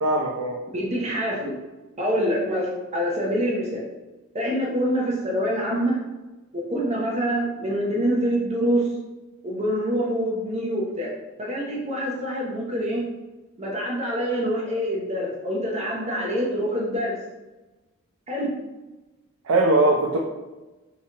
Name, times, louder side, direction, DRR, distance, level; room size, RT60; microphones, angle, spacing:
voice 1, 0.0-0.6 19.4-20.2, right 2 dB, 70° right, 0 dB, 0.5 m, -20 dB
voice 2, 0.7-1.6 2.0-3.8 4.3-6.0 6.5-8.9 9.4-11.1 11.4-13.0 13.6-17.2 18.3-18.5, equal, 30° right, -3 dB, 0.7 m, -25 dB
4.6 x 2.9 x 2.8 m, 1.1 s
head